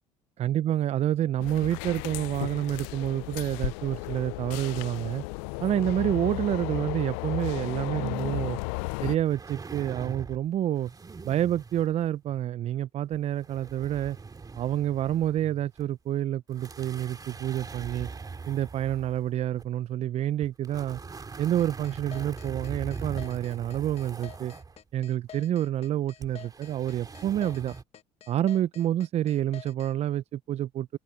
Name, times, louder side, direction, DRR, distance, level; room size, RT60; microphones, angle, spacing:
voice 1, 0.4-5.2 5.6-8.6 9.0-10.9 11.2-14.2 14.6-18.1 18.5-21.0 21.4-24.5 24.9-27.8 28.3-31.0, right 11 dB, 45° right, 0.7 m, -28 dB
sound 1, 1.4-9.2, left 30 dB, 70° left, 0.5 m, -34 dB
sound 2, 9.2-10.5 10.8-12.1 13.1-15.4 15.8-15.9 16.5-19.7 20.4-24.8 26.2-27.8, right 4 dB, 25° right, 2.9 m, -42 dB
sound 3, 21.6-29.9, left 9 dB, 45° left, 1.4 m, -48 dB
open air
hypercardioid pair, 65°, 15 cm